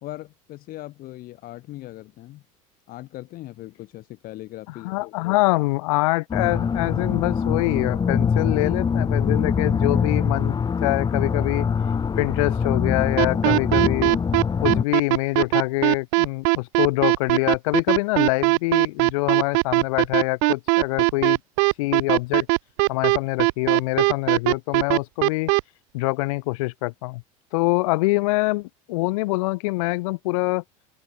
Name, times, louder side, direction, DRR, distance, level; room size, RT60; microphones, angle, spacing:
voice 1, 0.0-2.4 2.9-5.4, left 16 dB, 55° left, 2.0 m, -39 dB
voice 2, 4.8-11.7 12.2-14.1 14.6-21.4 21.8-22.5 22.9-25.5 25.9-27.2 27.5-30.6, left 23 dB, 75° left, 1.0 m, -25 dB
sound 1, 6.3-14.8, left 6 dB, 25° left, 1.0 m, -23 dB
sound 2, 13.2-25.6, right 40 dB or more, 70° right, 0.6 m, -19 dB
hypercardioid pair, 90°, 18 cm